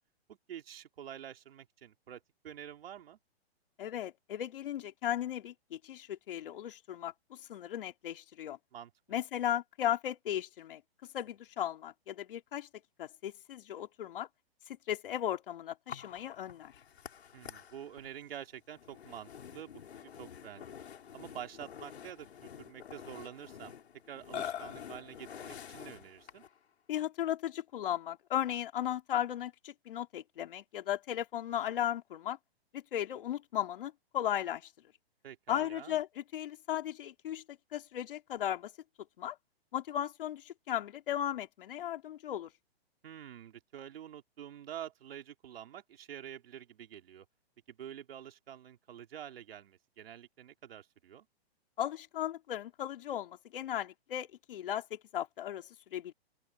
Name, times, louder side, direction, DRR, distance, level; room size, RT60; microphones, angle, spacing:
voice 1, 0.3-3.2 8.7-9.2 17.3-19.7 20.2-20.8 21.1-23.8 24.1-26.4 35.2-36.0 43.0-47.2 47.7-51.3, right 10 dB, 65° right, 3.4 m, -47 dB
voice 2, 3.8-8.6 9.1-10.8 11.1-12.7 13.0-14.3 14.7-16.7 26.9-32.4 32.7-34.7 35.5-38.7 39.2-39.4 39.7-42.5 51.8-56.1, left 11 dB, 55° left, 3.5 m, -36 dB
Burping eructation, 15.9-26.6, left 9 dB, 75° left, 5.3 m, -47 dB
open air
hypercardioid pair, 160°, 32 cm